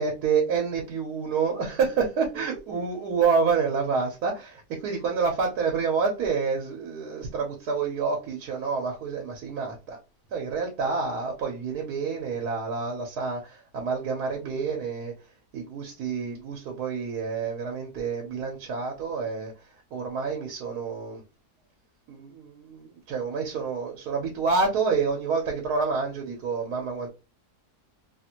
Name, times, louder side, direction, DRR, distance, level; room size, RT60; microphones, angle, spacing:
voice 1, 0.0-10.0 10.3-21.2 22.1-27.1, right 5 dB, 85° right, 1.3 m, -28 dB
2.9 x 2.5 x 2.8 m
omnidirectional pair, 1.6 m